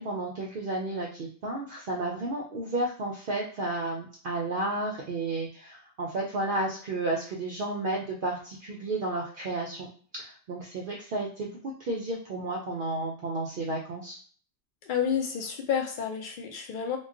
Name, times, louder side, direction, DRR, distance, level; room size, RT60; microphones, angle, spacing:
voice 1, 0.0-9.9 10.2-14.2, right 2 dB, 60° right, -1 dB, 0.6 m, -32 dB
voice 2, 14.8-17.0, left 7 dB, 60° left, 3 dB, 0.5 m, -30 dB
2.2 x 2.2 x 3.6 m, 0.43 s
omnidirectional pair, 1.2 m